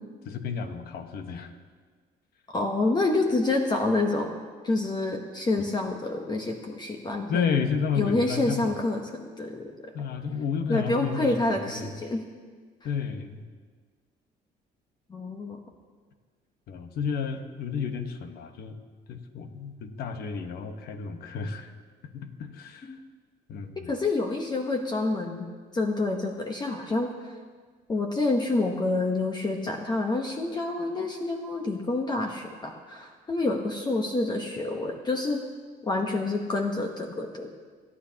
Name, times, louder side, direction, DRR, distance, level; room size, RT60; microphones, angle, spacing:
voice 1, 0.2-1.5 7.3-8.8 9.9-11.3 11.7-12.0 12.8-13.5 16.7-18.8 19.1-21.7 22.1-23.0 23.5-23.9, left 6 dB, 65° left, 6 dB, 1.3 m, -31 dB
voice 2, 2.5-4.4 4.6-7.5 8.0-9.9 10.7-12.3 15.1-15.6 22.8-23.0 23.9-25.5 25.7-27.1 27.9-35.4 35.8-37.5, left 2 dB, 25° left, 2 dB, 1.1 m, -28 dB
28.5 x 9.9 x 2.9 m, 1.6 s
cardioid pair, 110°, 17 cm